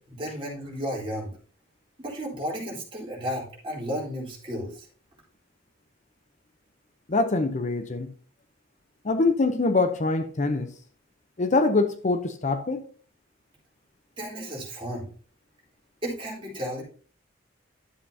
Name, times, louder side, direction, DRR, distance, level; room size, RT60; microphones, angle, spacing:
voice 1, 0.1-1.3 2.0-4.9 14.2-15.1 16.0-16.8, equal, 30° right, 3.7 m, -33 dB
voice 2, 7.1-8.1 9.0-10.7 11.4-12.8, left 3 dB, 40° left, 0.7 m, -24 dB
11.5 x 7.7 x 2.8 m
head